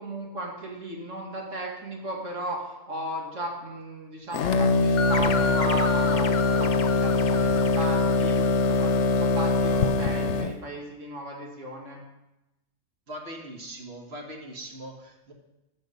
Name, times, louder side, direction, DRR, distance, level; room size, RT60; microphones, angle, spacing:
voice 1, 0.0-12.0, right 1 dB, 85° right, -1 dB, 2.4 m, -36 dB
sound 1, 4.3-10.6, left 3 dB, 75° left, 0.9 m, -23 dB
sound 2, 5.0-9.3, left 5 dB, 50° left, 0.6 m, -34 dB
voice 2, 13.1-15.3, right 1 dB, 60° right, 2 dB, 1.7 m, -40 dB
14.5 x 5.2 x 5.4 m, 0.96 s
omnidirectional pair, 1.3 m